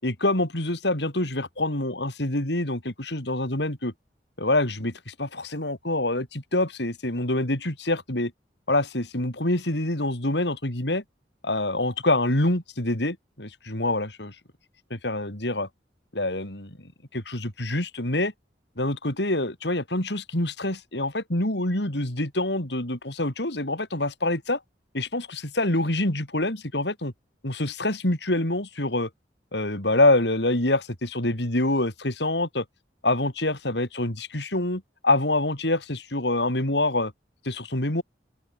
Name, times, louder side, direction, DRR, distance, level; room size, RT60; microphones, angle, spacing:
voice 1, 0.0-3.9 4.4-8.3 8.7-11.0 11.4-14.3 14.9-15.7 16.1-16.8 17.1-18.3 18.8-24.6 24.9-27.1 27.4-29.1 29.5-32.6 33.0-37.1 37.4-38.0, left 2 dB, 75° left, 4.6 m, -26 dB
open air
head